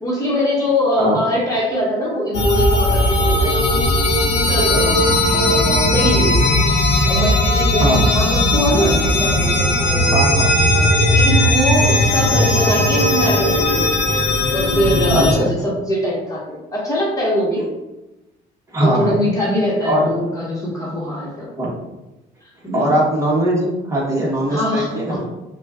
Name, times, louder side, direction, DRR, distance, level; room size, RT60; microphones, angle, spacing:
voice 1, 0.0-6.5 7.1-14.0 14.5-17.7 18.8-21.5 22.4-22.9 24.5-25.2, left 1 dB, 20° left, -5 dB, 1.4 m, -22 dB
sound 1, 2.3-15.4, left 1 dB, 40° left, 0.8 m, -17 dB
voice 2, 7.8-8.1 10.1-10.5 15.1-15.5 18.7-19.1 19.8-20.1 21.6-21.7 22.7-25.2, right 1 dB, 20° right, -4 dB, 1.3 m, -20 dB
6.0 x 2.4 x 2.5 m, 1.0 s
cardioid pair, 110°, 17 cm